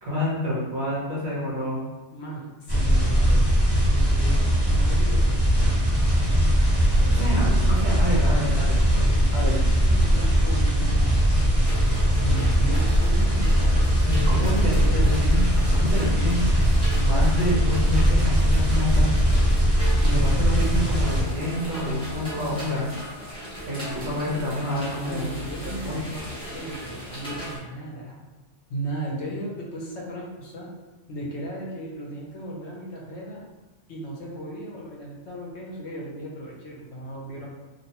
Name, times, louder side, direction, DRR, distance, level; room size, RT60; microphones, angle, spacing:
voice 1, 0.0-1.8 7.1-8.6 9.3-9.6 14.1-14.7 15.0-16.5 16.9-19.1 20.0-22.9 23.7-25.3 25.6-26.2, left 1 dB, 60° right, -6 dB, 1.0 m, -28 dB
voice 2, 2.1-3.5 3.9-4.4 4.7-5.9 7.0-7.7 8.3-11.3 12.1-13.8 14.2-15.1 24.9-26.2 26.5-28.2 28.7-30.7 31.1-33.4 33.9-37.5, right 1 dB, 70° left, -3 dB, 0.8 m, -36 dB
sound 1, 2.7-21.2, equal, 20° right, 0.9 m, -20 dB
sound 2, 5.9-16.9, right 1 dB, 40° left, 1.2 m, -35 dB
sound 3, 11.6-27.6, right 1 dB, 5° left, 0.5 m, -37 dB
2.5 x 2.1 x 2.8 m, 1.1 s
omnidirectional pair, 1.3 m